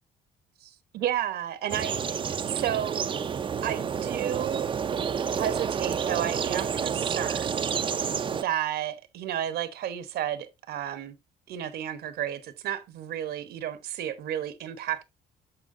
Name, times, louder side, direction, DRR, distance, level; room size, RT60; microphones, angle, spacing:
voice 1, 0.6-3.0 3.6-4.7 5.3-7.7 8.3-11.1 11.5-15.1, right 11 dB, 70° right, 1.1 m, -32 dB
sound 1, 1.7-8.4, right 7 dB, 30° right, 0.5 m, -29 dB
13.0 x 4.6 x 2.6 m
cardioid pair, 110°, 17 cm